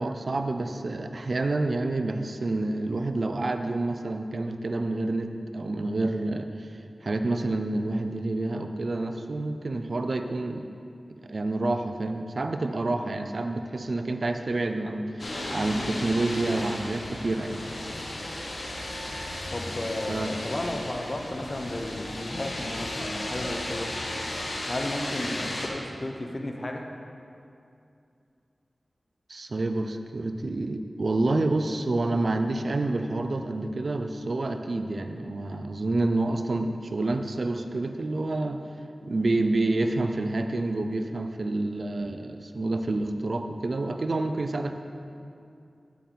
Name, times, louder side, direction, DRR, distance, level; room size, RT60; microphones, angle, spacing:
voice 1, 0.0-6.7 7.0-10.6 11.2-17.6 20.1-20.3 29.3-38.6 39.0-44.7, right 2 dB, 60° right, 7 dB, 0.5 m, -28 dB
sound 1, 15.2-25.7, left 1 dB, 70° left, 1.3 m, -34 dB
voice 2, 19.5-24.0 24.7-26.9, left 1 dB, 45° left, 3 dB, 0.9 m, -33 dB
9.2 x 8.3 x 3.9 m, 2.5 s
wide cardioid pair, 60°, 0 cm